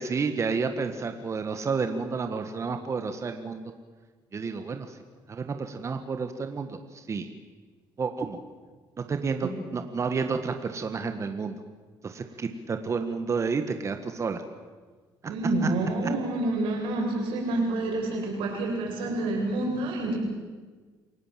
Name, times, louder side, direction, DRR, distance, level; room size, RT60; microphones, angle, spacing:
voice 1, 0.0-3.7 4.3-5.0 5.3-7.2 8.0-8.4 9.1-11.6 12.0-14.4 15.6-15.7, right 5 dB, 35° right, 7 dB, 1.7 m, -30 dB
voice 2, 15.3-20.2, right 2 dB, 80° right, 0 dB, 7.6 m, -28 dB
28.0 x 18.0 x 7.7 m, 1.4 s
cardioid pair, 105°, 9 cm